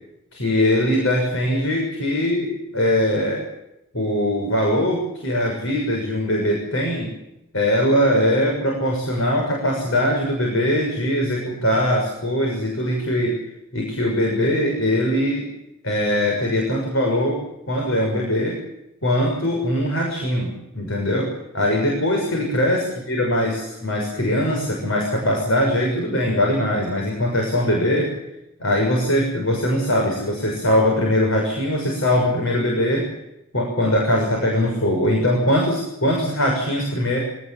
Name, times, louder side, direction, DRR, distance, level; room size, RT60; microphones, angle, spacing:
voice 1, 0.3-3.5 3.9-7.1 7.5-13.4 13.7-15.5 15.8-17.4 17.7-18.6 19.0-28.1 28.6-33.1 33.5-37.2, left 1 dB, 70° left, 1 dB, 6.5 m, -21 dB
25.0 x 19.0 x 7.4 m, 0.89 s
head